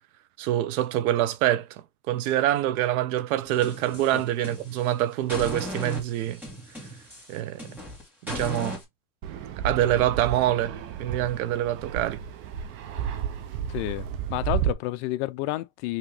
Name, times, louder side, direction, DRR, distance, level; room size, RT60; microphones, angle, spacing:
voice 1, 0.4-1.7 2.1-6.4 7.3-7.7 8.2-8.8 9.6-12.2, right 13 dB, 70° right, 0.8 m, -25 dB
sound 1, 3.4-4.9 5.3-8.8, equal, 5° right, 1.7 m, -37 dB
Fixed-wing aircraft airplane, 9.2-14.7, right 9 dB, 30° right, 0.4 m, -32 dB
voice 2, 13.7-16.0, left 17 dB, 50° left, 0.5 m, -30 dB
5.6 x 2.9 x 3.2 m
supercardioid pair, 160°, 44 cm